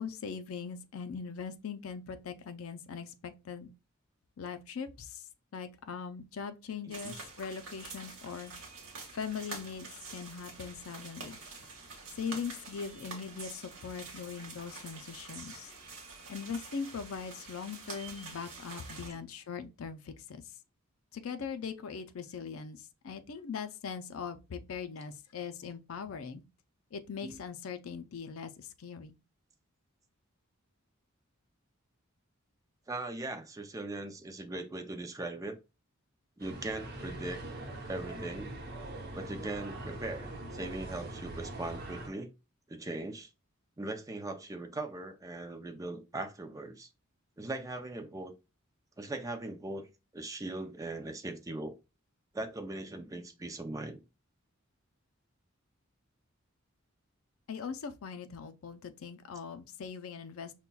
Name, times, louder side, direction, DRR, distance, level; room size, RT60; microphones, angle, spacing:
voice 1, 0.0-3.7 4.4-5.2 5.5-8.5 9.1-11.4 12.1-15.7 16.3-20.4 21.1-26.4 26.9-29.1 57.5-60.5, left 6 dB, 80° left, 0.4 m, -41 dB
sound 1, 6.9-19.1, right 4 dB, 90° right, 1.1 m, -47 dB
voice 2, 32.9-35.6 36.4-37.4 37.9-38.5 39.2-42.3 42.7-43.3 43.8-46.9 47.4-48.3 49.0-49.9 50.1-51.7 52.3-54.0, right 2 dB, 15° right, 0.4 m, -39 dB
sound 2, 36.4-42.1, right 1 dB, 50° right, 0.8 m, -42 dB
5.4 x 2.2 x 2.3 m
head